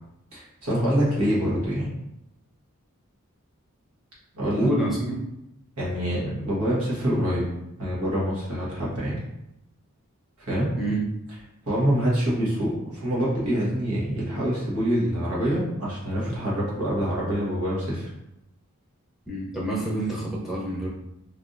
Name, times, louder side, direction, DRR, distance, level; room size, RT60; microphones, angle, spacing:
voice 1, 0.3-1.9 4.3-4.7 5.8-7.5 7.8-9.2 10.5-10.7 11.7-18.1, equal, 85° right, -6 dB, 1.2 m, -25 dB
voice 2, 4.5-5.3 10.8-11.1 19.3-20.9, right 1 dB, ahead, -6 dB, 0.7 m, -27 dB
3.3 x 2.5 x 2.6 m, 0.83 s
head